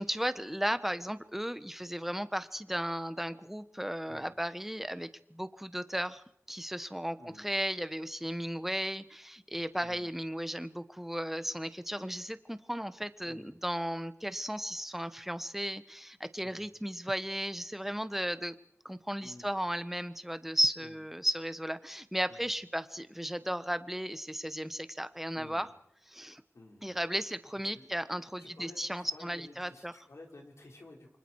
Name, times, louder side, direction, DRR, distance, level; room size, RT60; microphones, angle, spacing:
voice 1, 0.0-18.5 18.8-25.7 26.1-26.4 26.8-29.9, equal, 5° right, 12 dB, 1.3 m, -35 dB
voice 2, 7.2-7.5 9.8-10.1 13.2-13.6 16.4-16.6 19.2-19.5 20.8-21.0 22.3-22.4 25.3-25.7 26.5-26.9 27.6-31.2, left 2 dB, 80° left, 0 dB, 5.5 m, -53 dB
29.0 x 25.0 x 4.9 m, 0.69 s
wide cardioid pair, 55°, 5 cm